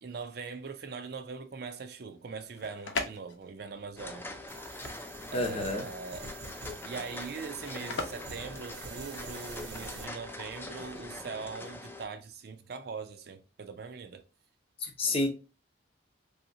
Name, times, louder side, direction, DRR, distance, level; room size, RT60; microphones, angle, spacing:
voice 1, 0.0-4.4 5.3-6.3 6.8-14.2, right 5 dB, 55° right, 0.4 m, -41 dB
sound 1, 2.3-9.4, left 3 dB, 70° left, 0.7 m, -40 dB
sound 2, 4.0-12.0, left 2 dB, 10° left, 0.3 m, -43 dB
sound 3, 4.5-10.0, right 4 dB, 80° right, 1.0 m, -46 dB
voice 2, 5.3-5.9 14.8-15.3, left 2 dB, 30° left, 0.7 m, -29 dB
3.3 x 2.8 x 2.6 m
head